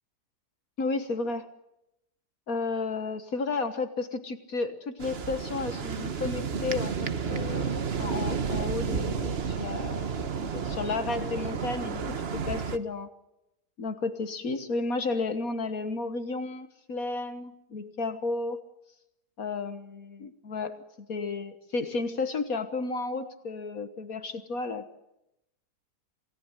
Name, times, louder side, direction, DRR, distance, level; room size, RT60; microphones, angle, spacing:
voice 1, 0.8-1.5 2.5-13.1 13.8-18.6 19.4-20.8 21.1-25.0, left 3 dB, 60° left, 9 dB, 1.7 m, -33 dB
sound 1, 5.0-12.8, right 6 dB, 40° right, 1.1 m, -31 dB
27.5 x 18.5 x 8.0 m, 0.86 s
omnidirectional pair, 1.8 m